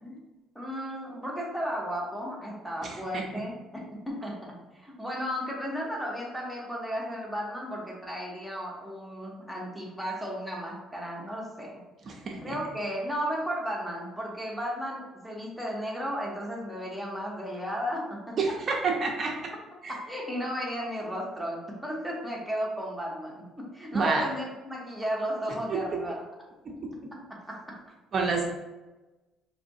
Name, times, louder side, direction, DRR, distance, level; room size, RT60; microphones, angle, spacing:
voice 1, 0.0-11.7 12.4-18.5 19.9-26.2 27.3-27.8, equal, ahead, -3 dB, 0.8 m, -34 dB
voice 2, 2.8-3.2 12.1-12.6 18.4-19.3 19.8-19.9 23.9-24.3 25.7-25.8 26.7-26.9 28.1-28.4, right 4 dB, 35° right, 1 dB, 0.5 m, -28 dB
4.9 x 3.0 x 2.6 m, 1.1 s
cardioid pair, 160°, 0 cm